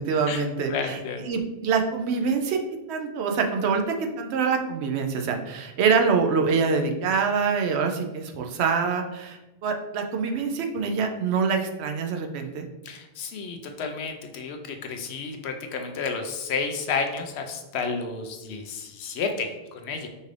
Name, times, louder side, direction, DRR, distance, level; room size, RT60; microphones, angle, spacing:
voice 1, 0.0-1.0 1.3-2.6 2.9-3.8 4.2-12.7, right 5 dB, 90° right, 4 dB, 0.9 m, -25 dB
voice 2, 0.7-1.2 12.8-20.1, left 5 dB, 85° left, 5 dB, 0.9 m, -31 dB
5.3 x 2.5 x 3.2 m, 1.1 s
omnidirectional pair, 1.1 m